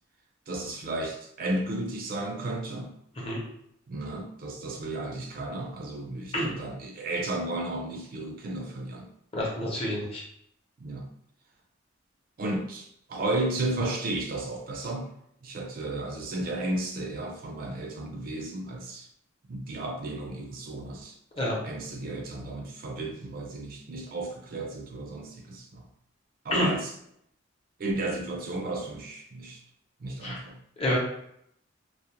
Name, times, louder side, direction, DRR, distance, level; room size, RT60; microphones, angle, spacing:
voice 1, 0.5-2.9 3.9-9.1 10.8-11.1 12.4-15.1 15.4-19.1 19.5-21.2 21.4-25.9 26.4-26.9 27.8-29.6 30.0-30.6, right 2 dB, 45° right, 2 dB, 0.3 m, -33 dB
voice 2, 9.3-10.2 21.4-21.6 26.5-26.7 30.2-30.4 30.8-31.0, equal, 30° left, -4 dB, 0.7 m, -28 dB
2.3 x 2.0 x 2.8 m, 0.72 s
head